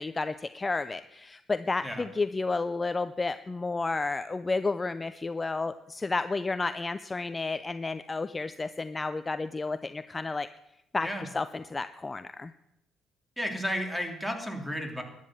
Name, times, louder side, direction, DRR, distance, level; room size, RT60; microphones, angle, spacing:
voice 1, 0.0-10.5 10.9-12.5, left 3 dB, 25° left, 12 dB, 0.6 m, -31 dB
voice 2, 13.4-15.0, equal, 5° right, 4 dB, 3.2 m, -33 dB
13.0 x 10.0 x 7.6 m, 0.87 s
supercardioid pair, 75°, 0 cm